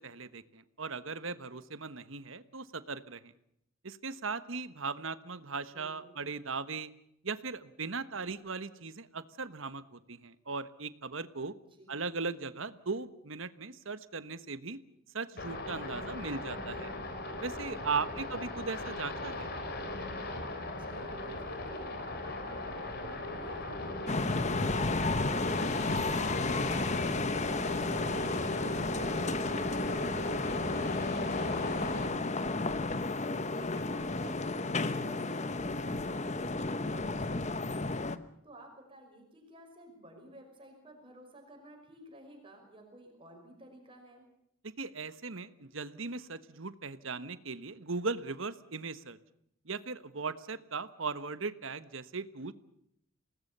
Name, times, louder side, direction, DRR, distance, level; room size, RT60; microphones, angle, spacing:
voice 1, 0.0-3.3 3.8-6.9 7.2-11.5 11.9-14.8 15.1-16.9 17.4-19.5 44.6-49.2 49.6-52.5, right 4 dB, 65° right, 13 dB, 1.4 m, -38 dB
voice 2, 5.7-6.2 11.8-12.2 20.7-33.0 33.5-38.0 38.4-44.3, right 1 dB, 25° right, 2 dB, 5.6 m, -53 dB
sound 1, 15.4-32.1, left 1 dB, 50° left, 3.7 m, -38 dB
sound 2, 24.1-38.2, left 3 dB, 35° left, 1.1 m, -32 dB
28.0 x 19.0 x 6.9 m, 0.74 s
head